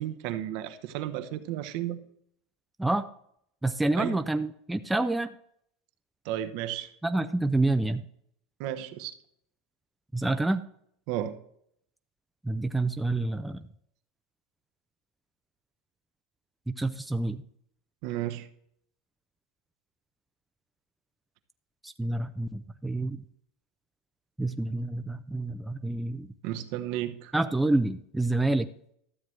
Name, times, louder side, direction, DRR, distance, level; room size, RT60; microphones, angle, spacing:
voice 1, 0.0-2.0 4.0-4.2 6.2-6.9 8.6-9.1 11.1-11.4 18.0-18.5 26.4-27.3, right 12 dB, 60° right, 9 dB, 0.9 m, -33 dB
voice 2, 3.6-5.3 7.0-8.0 10.1-10.6 12.4-13.6 16.7-17.4 21.8-23.2 24.4-26.3 27.3-28.7, right 2 dB, 5° right, 8 dB, 0.5 m, -28 dB
13.0 x 7.4 x 3.2 m, 0.69 s
supercardioid pair, 125°, 0 cm